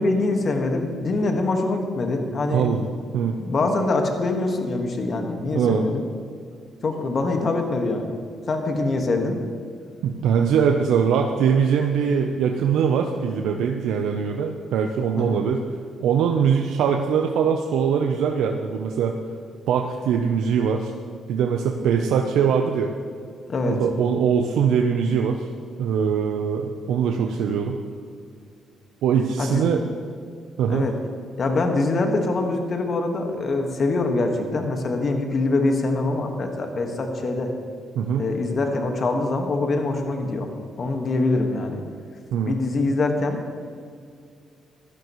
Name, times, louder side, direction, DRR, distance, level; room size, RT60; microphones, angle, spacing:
voice 1, 0.0-2.8 3.4-6.0 6.8-8.2 8.5-9.4 15.2-15.4 23.5-23.8 29.4-29.7 30.7-30.9 31.4-37.5 38.2-40.5 40.8-41.8 42.5-43.4, left 2 dB, 45° left, 3 dB, 1.6 m, -24 dB
voice 2, 2.5-2.8 3.1-3.4 5.5-5.8 10.0-15.6 16.0-19.2 19.7-20.9 21.3-22.9 23.7-25.5 25.8-27.8 29.0-29.8 30.6-30.9 38.0-38.3 42.3-42.5, right 7 dB, 85° right, 3 dB, 0.7 m, -22 dB
16.0 x 12.0 x 3.1 m, 2.3 s
cardioid pair, 90°, 0 cm